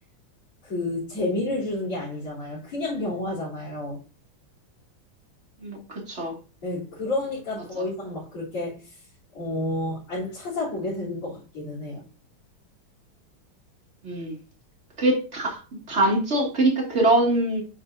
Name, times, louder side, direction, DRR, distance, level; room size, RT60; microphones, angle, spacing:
voice 1, 0.6-4.0 6.6-9.0 9.3-12.0, left 2 dB, 80° left, 4.5 m, -30 dB
voice 2, 5.6-6.3 7.7-7.8 14.0-14.4 15.0-15.6 15.9-17.6, right 2 dB, 30° right, 2.3 m, -23 dB
9.2 x 5.5 x 2.7 m
omnidirectional pair, 2.3 m